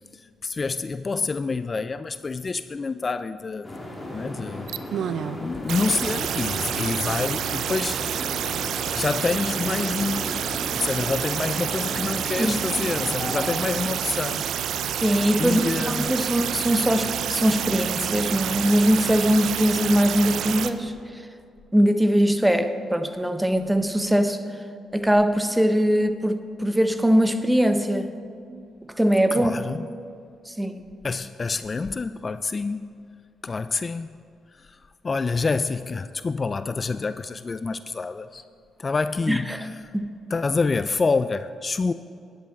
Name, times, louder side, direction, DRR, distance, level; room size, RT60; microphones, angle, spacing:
voice 1, 0.1-3.8 4.1-8.3 8.9-14.5 15.1-16.1 29.3-29.9 31.0-32.9 33.4-34.2 34.5-38.4 38.8-39.9 40.3-41.9, left 4 dB, 35° left, 12 dB, 0.3 m, -28 dB
sound 1, 3.6-13.7, left 1 dB, 20° left, 2.9 m, -36 dB
sound 2, 4.7-5.4 5.7-20.7, right 9 dB, 75° right, 0.5 m, -28 dB
voice 2, 14.9-15.6 15.9-21.2 21.7-24.4 24.9-28.1 29.0-29.5 30.5-30.8 39.3-39.6 39.9-40.2, equal, 5° right, 9 dB, 0.8 m, -21 dB
11.5 x 10.0 x 4.2 m, 2.4 s
supercardioid pair, 65°, 0 cm